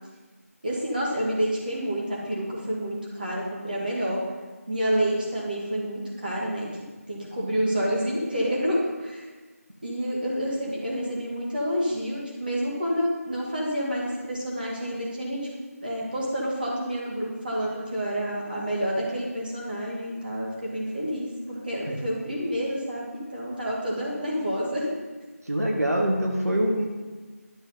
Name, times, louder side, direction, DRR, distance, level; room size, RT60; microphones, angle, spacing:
voice 1, 0.6-4.2 4.7-6.7 7.1-9.3 9.8-15.4 15.8-24.9, equal, 35° right, -5 dB, 2.4 m, -28 dB
voice 2, 25.4-26.9, equal, 75° right, 0 dB, 1.6 m, -24 dB
11.5 x 7.0 x 4.0 m, 1.3 s
figure-of-eight pair, 170°, 8 cm